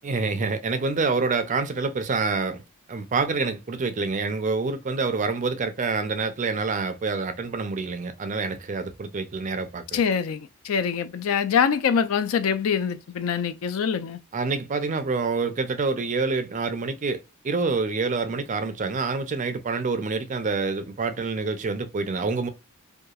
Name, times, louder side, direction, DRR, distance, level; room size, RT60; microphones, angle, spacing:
voice 1, 0.0-2.6 2.9-10.0 14.3-22.5, right 4 dB, 35° right, 0.4 m, -27 dB
voice 2, 9.9-14.2, left 7 dB, 65° left, 0.4 m, -24 dB
2.8 x 2.3 x 2.3 m
head